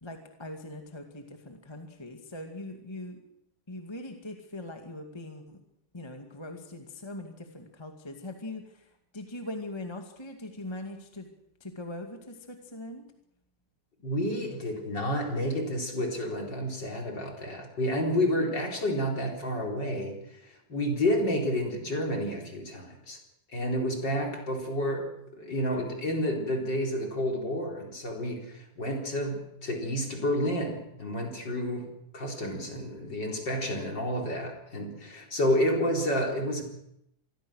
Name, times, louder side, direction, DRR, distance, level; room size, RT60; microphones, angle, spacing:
voice 1, 0.0-3.2 3.7-5.6 5.9-11.3 11.6-13.0, left 1 dB, 10° left, 4 dB, 1.7 m, -41 dB
voice 2, 14.0-23.2 23.5-31.9 32.1-36.6, equal, 35° left, 1 dB, 4.8 m, -30 dB
26.5 x 21.0 x 6.4 m, 0.77 s
omnidirectional pair, 3.5 m